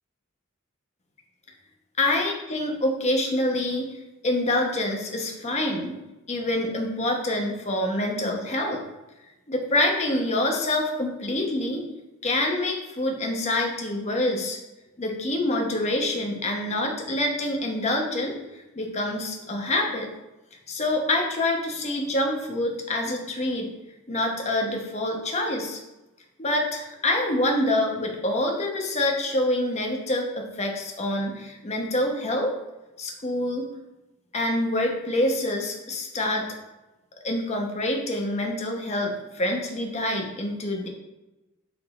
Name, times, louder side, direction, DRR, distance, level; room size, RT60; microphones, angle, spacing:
voice 1, 2.0-3.9 4.2-6.0 6.3-8.8 9.5-11.8 12.2-14.6 15.0-20.1 20.7-23.7 24.1-25.8 26.4-32.5 33.0-33.7 34.3-36.4 37.2-40.9, left 1 dB, 30° left, 1 dB, 1.0 m, -26 dB
6.9 x 3.7 x 4.1 m, 1.0 s
head